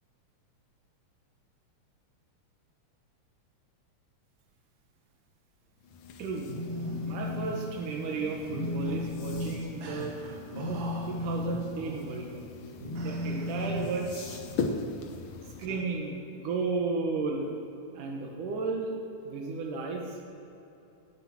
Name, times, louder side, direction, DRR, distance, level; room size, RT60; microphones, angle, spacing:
sound 1, 5.8-15.7, left 4 dB, 70° left, 2.4 m, -41 dB
voice 1, 6.2-6.5 6.9-10.1 11.1-12.5 13.0-14.4 15.6-17.5 17.9-18.9 19.2-20.2, right 4 dB, 80° right, 0 dB, 3.1 m, -34 dB
Telephone, 6.4-7.5 7.8-8.1 8.4-14.6, left 2 dB, 55° left, 4.0 m, -35 dB
sound 2, 6.4-7.1 8.1-9.5 9.8-11.4 11.8-12.2 13.0-14.1 15.7-15.9, right 4 dB, 60° right, 2.5 m, -44 dB
17.5 x 9.9 x 6.0 m, 2.9 s
omnidirectional pair, 3.6 m